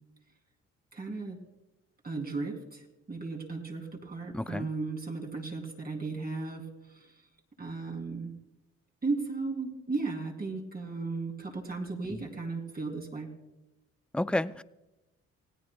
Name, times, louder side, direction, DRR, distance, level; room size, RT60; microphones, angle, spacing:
voice 1, 0.9-1.4 2.0-2.8 3.1-6.6 7.6-8.3 9.0-13.3, right 3 dB, 30° right, 2 dB, 2.9 m, -35 dB
voice 2, 4.3-4.7 12.1-12.2 14.1-14.6, left 1 dB, 5° left, 15 dB, 0.4 m, -31 dB
28.5 x 16.5 x 2.2 m, 0.97 s
cardioid pair, 90°, 30 cm